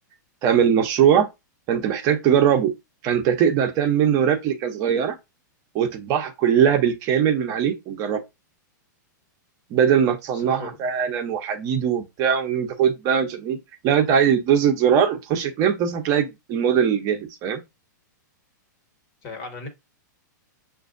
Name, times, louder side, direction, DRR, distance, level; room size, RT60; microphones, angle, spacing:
voice 1, 0.4-1.3 1.7-2.7 3.0-5.1 5.7-8.2 9.7-13.6 13.8-17.6, right 8 dB, 35° right, 0.8 m, -21 dB
voice 2, 10.3-10.8 19.2-19.7, left 3 dB, 45° left, 1.4 m, -36 dB
6.0 x 2.6 x 2.5 m
hypercardioid pair, 135°, 10 cm